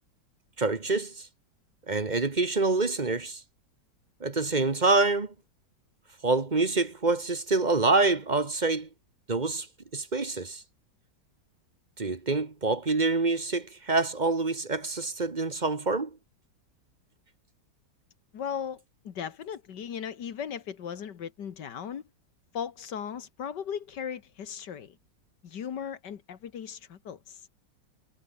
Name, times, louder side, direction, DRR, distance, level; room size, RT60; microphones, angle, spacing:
voice 1, 0.6-1.1 1.9-3.4 4.2-5.3 6.2-8.9 9.3-9.7 9.9-10.6 12.0-16.1, right 3 dB, 25° right, 1.3 m, -26 dB
voice 2, 18.3-22.0 22.5-25.0 25.4-27.4, left 8 dB, 70° left, 2.0 m, -37 dB
omnidirectional pair, 1.9 m